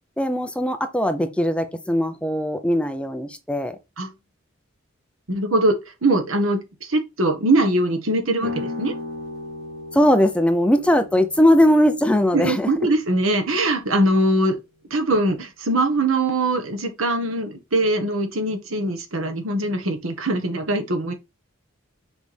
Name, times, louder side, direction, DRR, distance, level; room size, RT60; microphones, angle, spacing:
voice 1, 0.2-3.8 9.9-12.7, left 1 dB, 5° left, 0.6 m, -19 dB
voice 2, 5.3-8.9 12.3-14.5 14.9-21.1, right 1 dB, 75° right, 1.4 m, -22 dB
sound 1, 8.4-14.1, left 2 dB, 55° right, 2.3 m, -37 dB
6.3 x 4.8 x 3.4 m
head